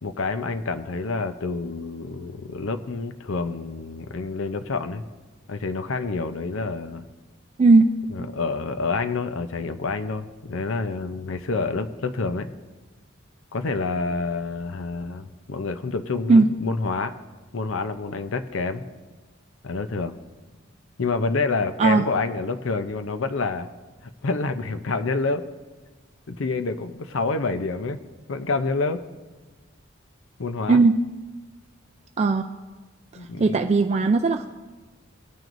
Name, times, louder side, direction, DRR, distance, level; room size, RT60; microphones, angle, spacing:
voice 1, 0.0-5.0 5.5-7.1 8.1-12.6 13.5-17.1 17.5-18.9 19.6-20.1 21.0-23.7 24.2-25.4 26.3-28.0 28.3-29.0 30.4-30.8 33.2-33.6, left 3 dB, 85° left, 10 dB, 0.6 m, -28 dB
voice 2, 33.4-34.5, right 3 dB, 35° right, 6 dB, 0.3 m, -17 dB
18.5 x 9.2 x 2.6 m, 1.3 s
head